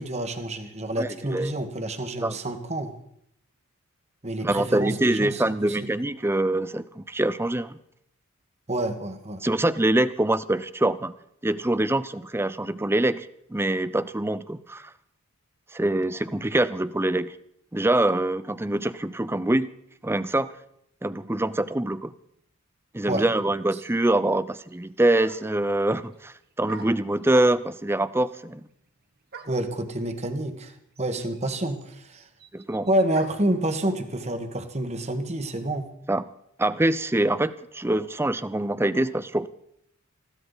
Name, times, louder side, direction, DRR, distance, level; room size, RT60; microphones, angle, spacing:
voice 1, 0.0-2.9 4.2-5.8 8.7-9.4 23.1-23.3 29.5-32.2 32.9-35.9, right 1 dB, 30° right, 7 dB, 1.4 m, -28 dB
voice 2, 1.0-1.5 2.2-2.4 4.4-7.8 9.4-11.1 11.4-14.9 15.7-17.3 17.7-19.7 20.0-20.5 21.0-22.1 22.9-28.6 32.5-32.9 36.1-36.2 36.6-39.5, right 1 dB, 10° right, 15 dB, 0.5 m, -24 dB
sound 1, 24.7-24.8 25.2-25.7 26.7-27.8 29.3-29.7 30.7-30.8 31.0-33.6, right 4 dB, 45° right, 1.3 m, -44 dB
20.5 x 15.5 x 4.0 m, 0.74 s
head